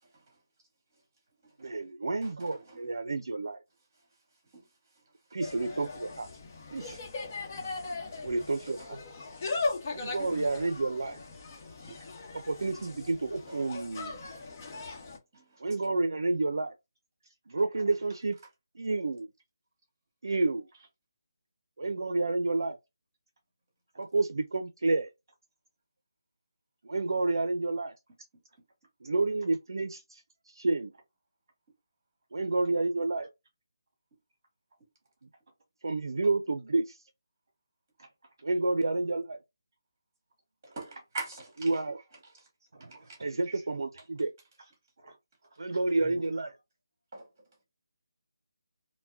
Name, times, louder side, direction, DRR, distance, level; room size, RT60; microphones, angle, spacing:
voice 1, 1.6-3.6 5.3-6.3 6.7-7.0 8.2-9.0 9.9-11.2 12.3-14.2 15.6-16.7 17.5-18.4 18.7-19.3 20.2-20.7 21.8-22.8 24.0-25.1 26.8-28.0 29.0-30.9 32.3-33.3 35.8-37.0 38.4-39.4 41.6-42.0 43.2-44.3 45.6-46.6, right 3 dB, 75° right, 0.5 m, -30 dB
voice 2, 2.2-2.8 4.5-4.6 8.9-9.0 10.0-10.1 13.5-13.6 14.7-15.0 15.3-15.7 40.6-41.7 43.1-43.2 47.1-47.3, right 3 dB, 30° right, 2.1 m, -43 dB
Insect, 5.4-15.2, left 3 dB, 30° left, 0.9 m, -38 dB
voice 3, 42.7-43.3 45.0-45.2 45.7-46.2, right 3 dB, 50° right, 1.1 m, -52 dB
4.5 x 2.1 x 2.6 m
figure-of-eight pair, 165°, 2 cm